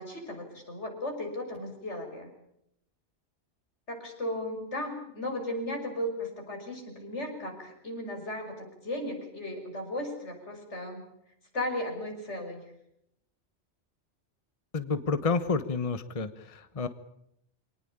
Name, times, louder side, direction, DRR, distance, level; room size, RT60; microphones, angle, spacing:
voice 1, 0.0-2.3 3.9-11.1 11.5-12.6, left 1 dB, 80° left, 3 dB, 6.6 m, -36 dB
voice 2, 14.7-16.9, left 4 dB, 30° left, 11 dB, 1.1 m, -30 dB
25.0 x 19.0 x 8.8 m, 0.76 s
omnidirectional pair, 1.2 m